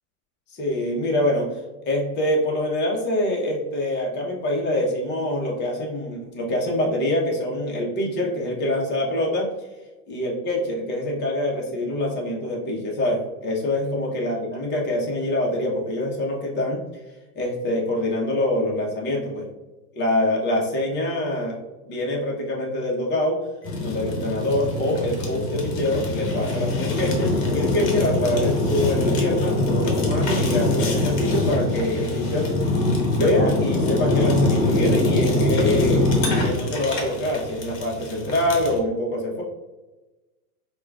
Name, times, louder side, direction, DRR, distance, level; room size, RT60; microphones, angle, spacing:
voice 1, 0.5-1.5 1.9-9.5 10.1-16.8 17.3-19.5 19.9-21.6 21.9-23.4 23.8-32.5 33.1-36.1 36.4-39.4, left 1 dB, 20° left, -2 dB, 0.9 m, -25 dB
Fire, 23.6-38.8, left 2 dB, 45° left, 1.1 m, -23 dB
4.7 x 2.4 x 2.3 m, 1.1 s
hypercardioid pair, 120°, 47 cm